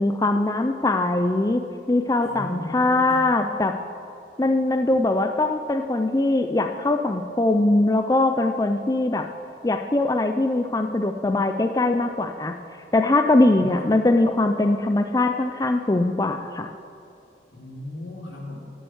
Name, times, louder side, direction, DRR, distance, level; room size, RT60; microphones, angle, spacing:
voice 1, 0.0-1.6 1.9-3.8 4.4-9.3 9.6-12.5 12.9-16.7, left 2 dB, 20° left, 6 dB, 0.4 m, -21 dB
voice 2, 2.2-3.3 13.3-13.9 17.5-18.6, left 1 dB, 85° left, -2 dB, 2.9 m, -37 dB
12.5 x 7.9 x 7.9 m, 2.6 s
head